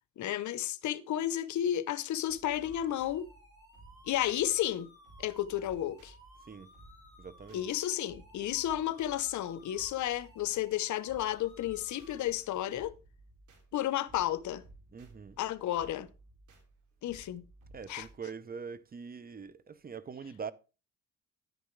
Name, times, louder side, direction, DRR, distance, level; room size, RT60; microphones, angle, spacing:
voice 1, 0.2-3.3 4.1-4.9 5.2-6.1 7.5-12.9 13.7-14.6 15.4-16.1 17.0-17.4 17.9-18.1, left 12 dB, 70° left, 0.8 m, -32 dB
sound 1, 2.3-18.2, right 2 dB, 75° right, 2.9 m, -58 dB
sound 2, 2.6-12.2, equal, 15° right, 5.7 m, -58 dB
voice 2, 7.2-7.7 14.9-15.4 17.7-20.5, right 6 dB, 30° right, 0.7 m, -43 dB
11.0 x 9.2 x 3.2 m
cardioid pair, 90°, 30 cm